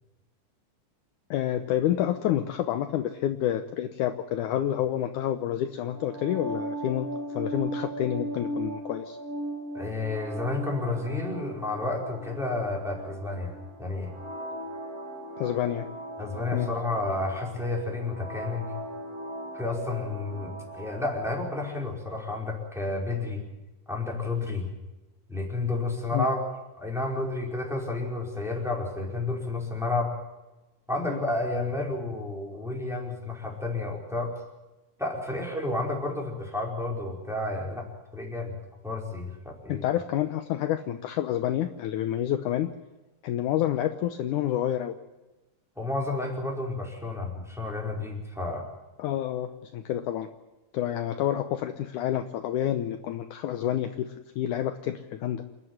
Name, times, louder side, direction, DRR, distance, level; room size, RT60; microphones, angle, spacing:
voice 1, 1.3-9.2 15.4-15.9 16.5-16.7 26.1-26.3 31.1-31.2 39.7-42.7 43.2-44.9 49.0-50.3 50.7-55.4, left 11 dB, 70° left, 8 dB, 2.1 m, -28 dB
sound 1, 5.9-21.8, right 1 dB, 40° right, 1.4 m, -38 dB
voice 2, 9.7-14.1 16.2-18.7 19.5-23.4 23.9-24.7 25.3-26.5 26.8-30.1 30.9-34.3 35.0-38.5 38.8-39.8 45.8-48.7, left 2 dB, ahead, -1 dB, 4.4 m, -31 dB
28.0 x 11.0 x 9.7 m, 1.1 s
omnidirectional pair, 4.1 m